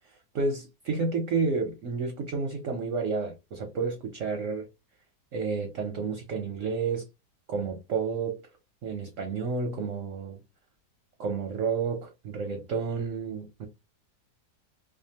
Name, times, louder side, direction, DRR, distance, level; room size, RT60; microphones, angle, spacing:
voice 1, 0.3-4.7 5.3-7.0 7.5-8.4 8.8-10.4 11.2-13.7, right 4 dB, 65° right, 0.8 m, -30 dB
2.8 x 2.2 x 2.8 m
omnidirectional pair, 1.9 m